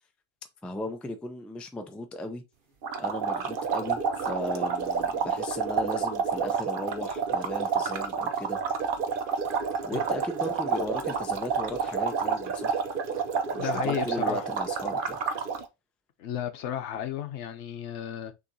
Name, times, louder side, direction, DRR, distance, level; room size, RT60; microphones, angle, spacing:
voice 1, 0.6-2.4 3.0-8.6 9.8-12.8 13.5-15.2, left 1 dB, ahead, 0.3 m, -36 dB
sound 1, 2.8-15.6, right 6 dB, 55° right, 0.8 m, -29 dB
voice 2, 13.6-14.4 16.2-18.3, left 10 dB, 85° left, 1.0 m, -33 dB
6.3 x 2.9 x 2.7 m
omnidirectional pair, 1.1 m